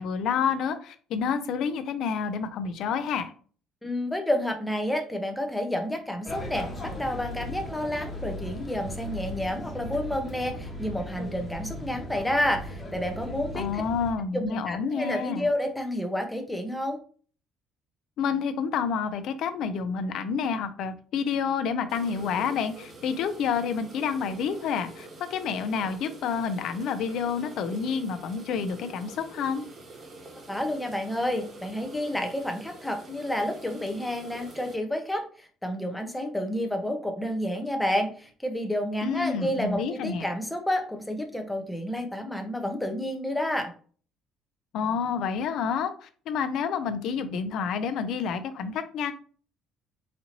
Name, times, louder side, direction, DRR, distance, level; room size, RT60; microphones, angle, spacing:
voice 1, 0.0-3.3 13.5-15.5 18.2-29.6 39.0-40.3 44.7-49.1, left 6 dB, 60° left, 10 dB, 0.5 m, -29 dB
voice 2, 3.8-13.8 14.3-17.0 30.5-43.7, left 1 dB, 5° left, 4 dB, 0.7 m, -30 dB
sound 1, 6.3-14.1, left 1 dB, 20° left, 1.2 m, -37 dB
sound 2, 21.9-34.8, right 2 dB, 35° right, 1.1 m, -46 dB
4.2 x 2.6 x 2.9 m, 0.42 s
cardioid pair, 135°, 0 cm